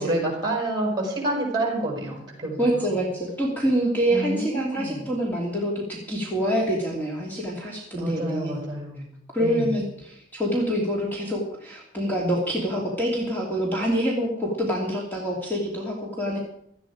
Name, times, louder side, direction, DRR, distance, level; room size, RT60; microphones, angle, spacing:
voice 1, 0.0-3.0 4.1-5.1 7.9-9.1 9.4-9.7, right 1 dB, 25° right, 0 dB, 6.0 m, -28 dB
voice 2, 2.6-8.6 9.3-16.4, equal, 10° left, -3 dB, 2.8 m, -26 dB
17.5 x 13.5 x 5.0 m, 0.73 s
head